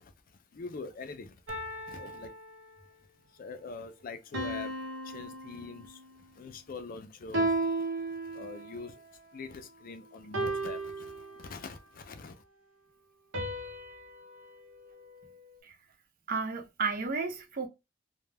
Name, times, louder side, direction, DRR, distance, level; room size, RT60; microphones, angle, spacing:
voice 1, 0.5-1.3 1.9-2.3 3.4-4.7 5.1-6.0 6.4-7.5 8.3-8.9 9.3-11.1 11.4-12.3, left 4 dB, 45° left, 0.4 m, -43 dB
sound 1, 1.5-3.0 4.3-6.2 7.3-8.8 10.3-11.8 13.3-15.6, right 2 dB, 80° right, 0.8 m, -36 dB
voice 2, 16.3-17.7, right 4 dB, 50° right, 0.6 m, -32 dB
2.2 x 2.1 x 3.2 m
head